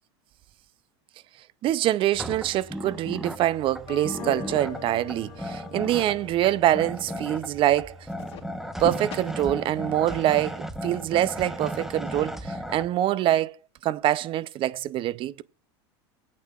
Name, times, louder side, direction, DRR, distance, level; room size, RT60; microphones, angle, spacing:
voice 1, 1.6-8.0 8.8-13.6 13.8-15.4, right 13 dB, 40° right, 0.5 m, -25 dB
sound 1, 2.1-12.9, equal, ahead, 0.9 m, -36 dB
sound 2, 3.9-7.5 8.0-9.2 10.8-10.9 11.4-11.5 11.7-11.8 12.1-12.2, left 7 dB, 45° left, 3.0 m, -40 dB
18.5 x 8.6 x 2.4 m
hypercardioid pair, 110°, 14 cm